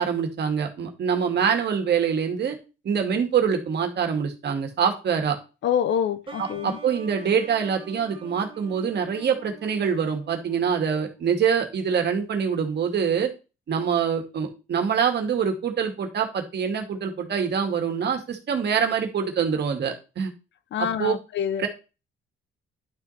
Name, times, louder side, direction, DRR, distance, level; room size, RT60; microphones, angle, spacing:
voice 1, 0.0-2.6 2.8-5.4 6.4-13.3 13.7-20.3 21.0-21.2 21.6-21.7, right 7 dB, 60° right, 2.2 m, -25 dB
voice 2, 5.6-6.8 20.7-21.7, left 8 dB, 65° left, 0.8 m, -26 dB
sound 1, 6.3-11.7, right 4 dB, 25° right, 1.6 m, -46 dB
11.0 x 4.8 x 4.2 m
cardioid pair, 90°, 20 cm